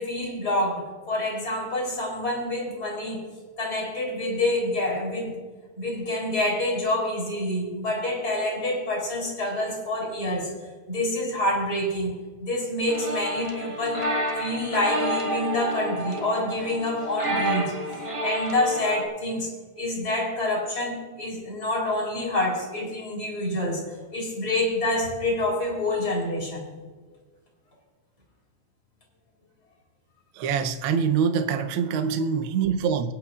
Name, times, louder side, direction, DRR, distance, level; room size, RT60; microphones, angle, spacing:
voice 1, 0.0-3.3 3.6-5.4 5.8-10.5 10.9-12.1 12.4-17.8 18.2-23.8 24.1-26.6, left 1 dB, 30° left, -2 dB, 4.3 m, -27 dB
sound 1, 12.9-19.1, right 1 dB, 20° right, 0.7 m, -29 dB
voice 2, 30.4-33.1, right 6 dB, 80° right, 8 dB, 1.1 m, -24 dB
24.5 x 8.7 x 2.5 m, 1.5 s
omnidirectional pair, 3.4 m